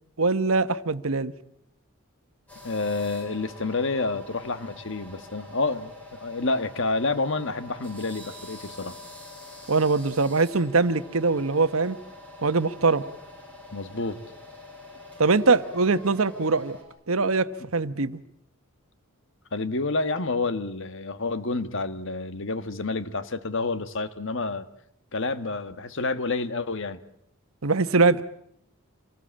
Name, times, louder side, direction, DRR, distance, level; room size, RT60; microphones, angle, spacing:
voice 1, 0.2-1.3 9.7-12.0 12.4-13.0 15.2-16.8 17.1-18.2 27.6-28.2, right 3 dB, 75° right, 1.1 m, -22 dB
sound 1, 2.5-16.8, left 1 dB, 5° left, 6.9 m, -45 dB
voice 2, 2.6-9.0 13.7-14.2 19.5-24.7 25.1-27.0, left 3 dB, 60° left, 1.4 m, -29 dB
26.5 x 19.5 x 8.7 m
head